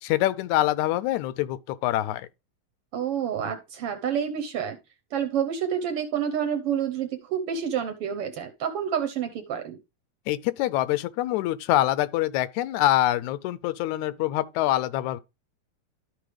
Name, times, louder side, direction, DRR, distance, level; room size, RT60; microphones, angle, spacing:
voice 1, 0.0-2.3 10.3-15.2, left 14 dB, 85° left, 2.0 m, -25 dB
voice 2, 2.9-4.8 5.1-9.8, right 8 dB, 65° right, 1.5 m, -28 dB
13.0 x 4.7 x 3.3 m
omnidirectional pair, 3.3 m